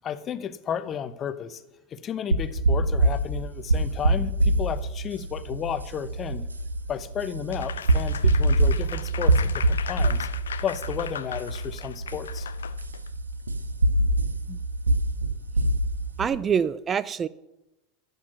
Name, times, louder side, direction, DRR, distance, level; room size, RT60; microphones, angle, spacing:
voice 1, 0.0-1.6 1.9-6.5 6.9-10.3 10.6-12.5, left 8 dB, 35° left, 13 dB, 0.8 m, -33 dB
sound 1, 2.3-16.3, right 2 dB, 90° right, 0.7 m, -25 dB
Applause, 7.5-13.1, left 8 dB, 75° left, 0.5 m, -38 dB
voice 2, 16.2-17.3, right 7 dB, 30° right, 18 dB, 0.4 m, -25 dB
11.5 x 8.2 x 6.1 m, 0.94 s
figure-of-eight pair, 85°, 0 cm